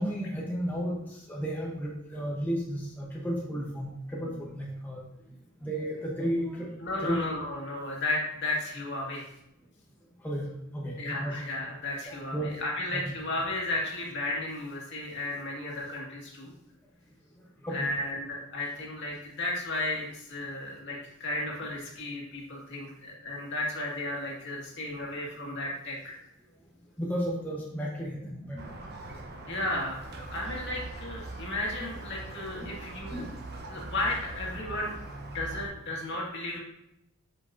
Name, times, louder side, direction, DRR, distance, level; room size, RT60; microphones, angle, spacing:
voice 1, 0.0-5.0 5.6-6.7 7.0-7.2 10.2-10.5 10.7-11.4 12.1-12.5 12.9-13.0 17.6-17.9 27.0-28.6 29.1-29.2 32.6-32.7 33.1-33.3, equal, 10° left, -4 dB, 0.9 m, -33 dB
voice 2, 6.8-9.3 11.0-16.5 17.7-26.1 29.5-33.2 33.7-35.0 35.3-36.6, left 2 dB, 55° left, -2 dB, 2.0 m, -34 dB
Squeak, 28.6-35.7, right 2 dB, 50° right, 1.0 m, -41 dB
8.0 x 6.0 x 2.7 m, 0.83 s
head